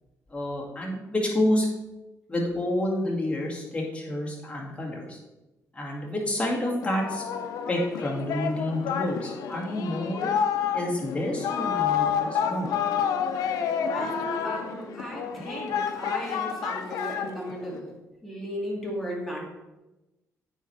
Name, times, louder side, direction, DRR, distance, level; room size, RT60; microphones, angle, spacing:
voice 1, 0.3-1.7 2.3-5.2 5.7-7.2 7.7-10.3 10.7-12.7, left 1 dB, 20° left, -3 dB, 2.0 m, -29 dB
Singing, 6.8-17.8, left 7 dB, 80° left, 0.6 m, -29 dB
voice 2, 13.7-17.9 18.2-19.5, equal, 5° left, -4 dB, 2.4 m, -35 dB
9.0 x 4.4 x 3.2 m, 1.0 s
cardioid pair, 90°, 6 cm